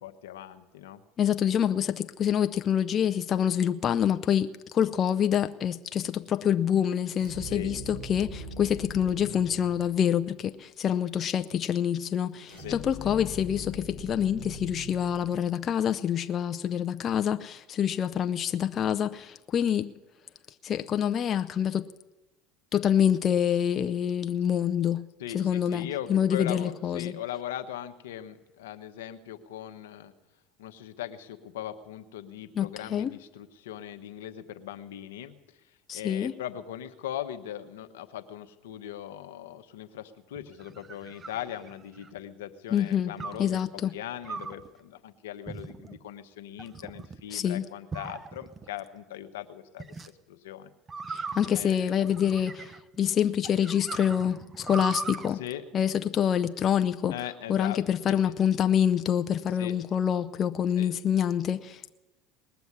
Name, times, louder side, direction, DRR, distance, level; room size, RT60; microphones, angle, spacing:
voice 1, 0.0-1.0 7.4-7.7 12.6-13.1 25.2-30.1 30.6-35.3 35.9-43.6 43.9-49.9 50.3-50.7 51.1-51.9 55.3-55.6 57.1-57.8 58.1-58.4 59.6-59.7 60.7-60.9, left 11 dB, 85° left, 0.9 m, -39 dB
voice 2, 1.2-19.9 20.6-21.9 22.7-25.0 25.3-27.2 32.6-33.1 35.9-36.3 42.7-43.1 43.4-43.9 47.3-47.6 51.1-55.4 55.7-57.2 57.5-61.9, left 9 dB, 40° left, 0.5 m, -26 dB
sound 1, 7.2-10.5 12.5-15.8, left 1 dB, 85° right, 6.4 m, -42 dB
sound 2, 40.4-42.2 43.2-43.5 44.2-44.7 45.5-46.0 46.6-47.2 47.9-48.7 49.8-50.1 50.9-53.0 53.4-55.3, right 4 dB, 30° right, 0.8 m, -39 dB
20.0 x 7.1 x 9.5 m
hypercardioid pair, 90°, 0 cm